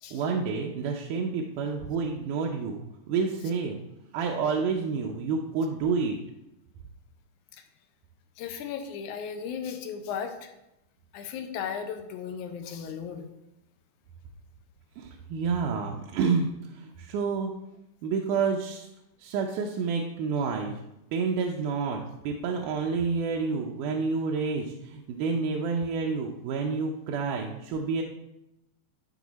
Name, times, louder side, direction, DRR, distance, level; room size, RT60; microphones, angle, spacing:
voice 1, 0.1-2.8 3.1-3.8 4.1-6.2 15.0-16.5 16.8-17.5 18.0-18.9 19.2-20.8 21.1-28.0, right 5 dB, 80° right, 1 dB, 2.1 m, -29 dB
voice 2, 8.4-10.5 11.1-13.3, left 7 dB, 75° left, 6 dB, 2.1 m, -36 dB
11.0 x 4.7 x 4.1 m, 0.88 s
omnidirectional pair, 3.7 m